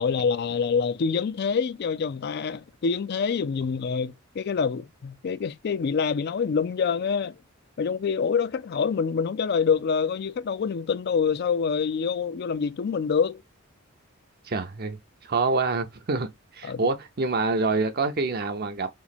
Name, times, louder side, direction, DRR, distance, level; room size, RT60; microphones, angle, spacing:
voice 1, 0.0-7.3 7.8-13.4 16.6-16.9, left 6 dB, 50° left, 0.3 m, -26 dB
voice 2, 14.4-18.9, right 3 dB, 45° right, 0.5 m, -26 dB
3.5 x 3.1 x 4.0 m
head